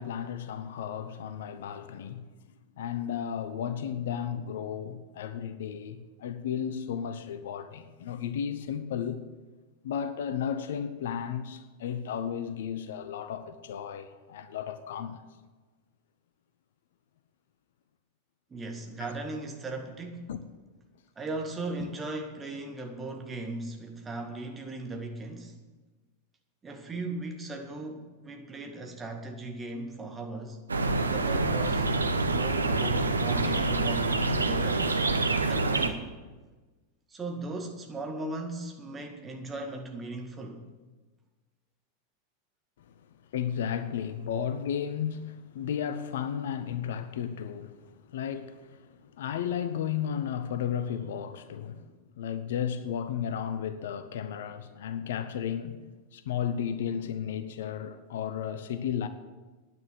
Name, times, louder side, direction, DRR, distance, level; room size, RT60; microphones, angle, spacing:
voice 1, 0.0-2.2 2.8-9.2 9.8-15.2 19.0-19.1 20.3-20.4 21.8-21.9 42.9-43.0 43.3-51.9 52.2-55.8 56.1-59.1, left 8 dB, 60° left, 0.7 m, -34 dB
voice 2, 18.5-20.3 21.2-25.6 26.6-30.6 31.0-31.9 32.3-34.9 35.4-36.1 37.1-40.7, right 2 dB, 15° right, 1.9 m, -37 dB
sound 1, 30.7-35.9, right 3 dB, 75° right, 0.8 m, -26 dB
9.9 x 9.6 x 7.7 m
figure-of-eight pair, 90°, 0 cm